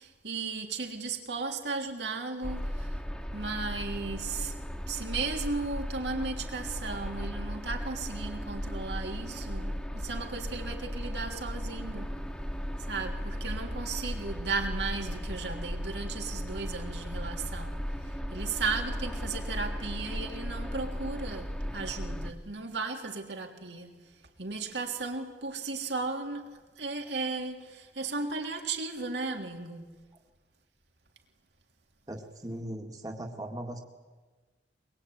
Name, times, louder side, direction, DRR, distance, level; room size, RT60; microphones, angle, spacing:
voice 1, 0.0-3.0 3.3-12.3 12.8-29.9, right 3 dB, 75° right, 3.4 m, -36 dB
sound 1, 2.4-22.3, equal, 5° left, 1.8 m, -36 dB
voice 2, 32.1-33.8, right 1 dB, 20° right, 2.0 m, -38 dB
23.0 x 22.5 x 9.5 m
head